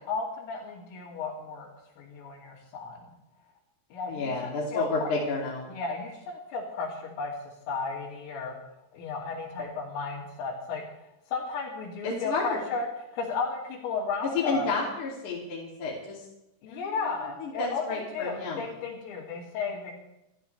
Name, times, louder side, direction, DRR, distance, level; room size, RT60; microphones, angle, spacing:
voice 1, 0.1-1.7 2.0-3.1 3.9-5.1 5.7-7.3 7.7-8.5 8.9-10.8 11.3-12.9 13.1-14.7 16.6-19.9, left 4 dB, 85° left, -7 dB, 5.4 m, -34 dB
voice 2, 4.1-5.7 12.0-12.6 14.2-16.3 16.7-18.7, left 3 dB, 45° left, -3 dB, 3.8 m, -31 dB
29.5 x 14.0 x 3.4 m, 0.88 s
omnidirectional pair, 5.6 m